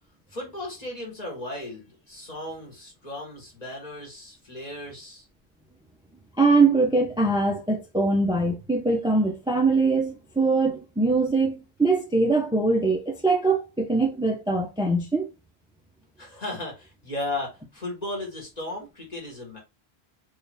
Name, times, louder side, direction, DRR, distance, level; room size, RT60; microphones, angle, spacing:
voice 1, 0.3-5.3 16.2-19.6, left 2 dB, 40° left, 1.7 m, -35 dB
voice 2, 6.4-15.3, right 3 dB, 5° right, 0.6 m, -22 dB
4.2 x 2.7 x 3.4 m
omnidirectional pair, 1.1 m